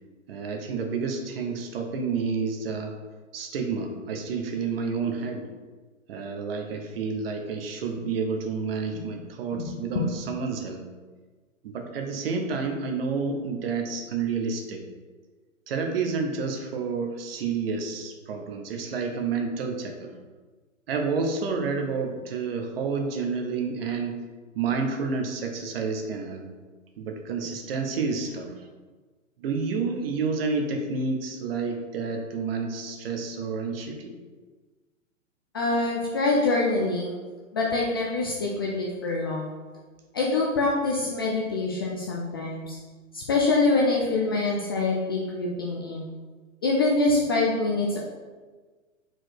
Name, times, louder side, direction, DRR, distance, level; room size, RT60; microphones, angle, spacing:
voice 1, 0.3-3.0 3.3-5.5 6.1-10.8 11.6-14.8 15.7-20.1 20.9-24.2 24.5-26.4 27.0-28.7 29.4-34.1, right 4 dB, 45° right, 4 dB, 1.0 m, -29 dB
voice 2, 9.5-10.0 35.5-37.2 37.5-39.5 40.1-42.8 43.1-46.1 46.6-48.0, left 3 dB, 20° left, -3 dB, 0.4 m, -25 dB
4.5 x 4.4 x 4.7 m, 1.4 s
figure-of-eight pair, 115°, 40 cm